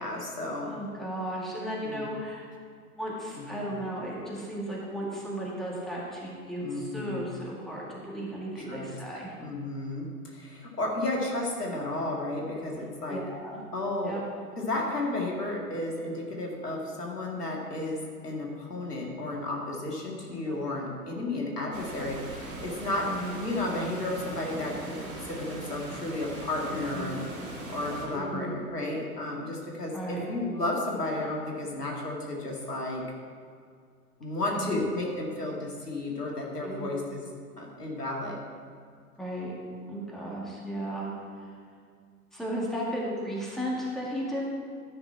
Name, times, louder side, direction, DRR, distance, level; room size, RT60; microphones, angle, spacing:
voice 1, 0.0-0.8 1.8-2.1 3.5-3.7 6.6-7.3 8.6-8.9 9.4-13.2 13.7-14.1 14.6-23.1 23.4-27.2 27.7-33.0 34.2-37.2 37.6-38.4, left 2 dB, 80° left, -1 dB, 2.1 m, -33 dB
voice 2, 0.7-2.4 3.0-9.3 13.1-13.6 14.0-14.2 20.4-20.7 23.0-23.4 26.9-27.2 28.1-28.6 29.9-30.3 34.5-34.8 36.6-36.9 39.2-39.5 39.9-41.1 41.4-41.6 42.3-44.4, right 1 dB, ahead, -5 dB, 1.9 m, -35 dB
Water, 21.7-28.1, right 2 dB, 60° right, 2.8 m, -40 dB
12.5 x 5.9 x 4.6 m, 2.2 s
figure-of-eight pair, 100°, 46 cm